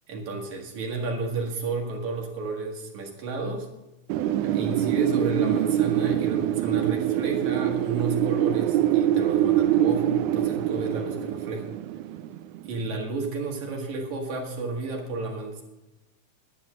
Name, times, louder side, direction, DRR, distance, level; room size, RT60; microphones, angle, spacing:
voice 1, 0.1-3.7 4.4-11.7 12.6-15.6, right 3 dB, 70° right, 1 dB, 3.2 m, -32 dB
Wind, 4.1-12.8, right 12 dB, 85° right, 2.0 m, -24 dB
10.5 x 9.9 x 6.1 m, 0.98 s
omnidirectional pair, 3.4 m